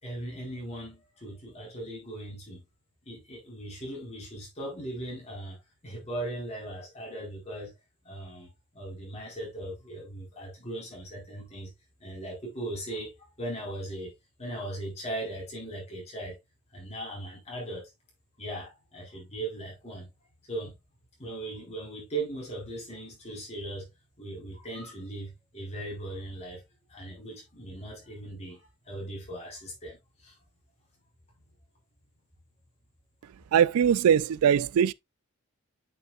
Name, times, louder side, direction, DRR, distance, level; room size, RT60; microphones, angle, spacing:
voice 1, 0.0-2.6 3.1-5.6 5.8-7.7 8.0-11.7 12.0-14.1 14.4-16.4 16.7-17.9 18.4-20.1 20.5-20.7 21.2-23.9 24.2-26.6 26.9-30.3, right 1 dB, 30° left, 4.3 m, -38 dB
voice 2, 33.5-34.9, right 8 dB, 75° right, 0.3 m, -21 dB
8.7 x 6.0 x 2.3 m
head